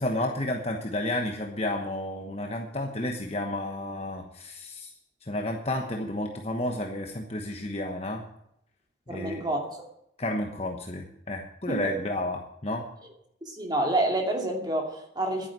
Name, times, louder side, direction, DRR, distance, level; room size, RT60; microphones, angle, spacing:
voice 1, 0.0-4.9 5.2-8.2 9.1-9.4 10.2-12.9, left 1 dB, 35° left, 2 dB, 1.2 m, -31 dB
voice 2, 9.1-9.8 11.7-11.9 13.4-15.5, right 1 dB, 20° right, 1 dB, 2.5 m, -28 dB
11.0 x 9.8 x 7.5 m, 0.76 s
head